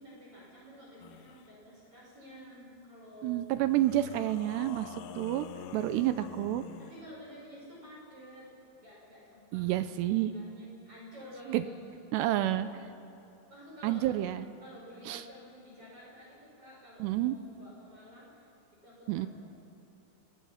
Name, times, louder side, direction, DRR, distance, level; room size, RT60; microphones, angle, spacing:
voice 1, 0.0-3.5 6.8-8.5 8.8-12.8 13.5-14.1 14.6-18.5 18.8-19.3, equal, 30° right, -5 dB, 7.0 m, -51 dB
sound 1, 1.0-1.5 3.6-7.1, left 9 dB, 90° left, 3.4 m, -47 dB
voice 2, 3.2-4.9 5.2-5.5 5.7-6.6 9.5-10.3 11.5-11.6 12.1-12.7 13.8-14.5 15.1-15.2 17.0-17.4 19.1-19.3, right 14 dB, 80° right, 11 dB, 2.6 m, -29 dB
29.5 x 21.0 x 5.9 m, 2.9 s
omnidirectional pair, 5.4 m